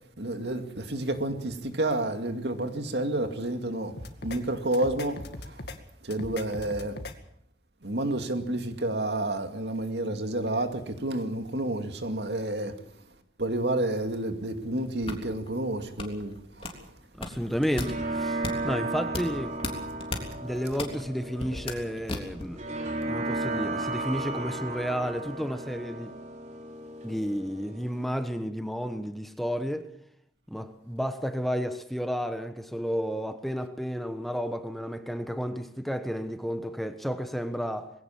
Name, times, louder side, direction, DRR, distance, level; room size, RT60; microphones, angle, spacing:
voice 1, 0.2-3.9 4.2-5.6 6.0-7.0 7.8-12.8 13.4-16.9, right 1 dB, 65° right, 2.4 m, -30 dB
sound 1, 4.0-4.4 4.7-5.8 6.1-7.1, left 2 dB, 65° left, 2.2 m, -39 dB
sound 2, 14.6-22.6, left 2 dB, 30° left, 3.4 m, -37 dB
voice 2, 17.1-19.6 20.4-22.6 23.1-26.2 27.0-29.9 30.5-37.9, equal, ahead, 1.2 m, -32 dB
sound 3, 17.4-28.3, right 2 dB, 40° right, 3.8 m, -35 dB
21.5 x 17.0 x 7.3 m
head